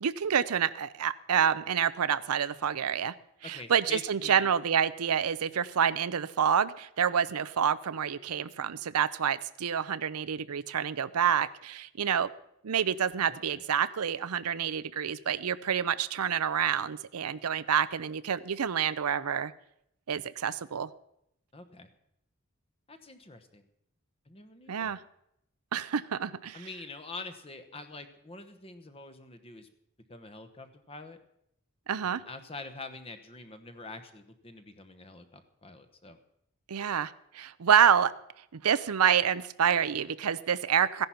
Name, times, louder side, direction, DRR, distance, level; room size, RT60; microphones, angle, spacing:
voice 1, 0.0-3.1 3.4-12.3 12.6-19.5 20.1-20.9 24.7-25.0 25.7-26.7 31.9-32.2 36.7-38.1 38.5-41.1, right 8 dB, 90° right, 16 dB, 0.6 m, -28 dB
voice 2, 3.4-4.5 13.3-13.6 21.5-21.9 22.9-23.6 24.3-25.0 26.5-29.7 30.1-31.2 32.0-36.2, left 3 dB, 25° left, 9 dB, 1.1 m, -45 dB
15.0 x 10.5 x 5.8 m, 0.77 s
head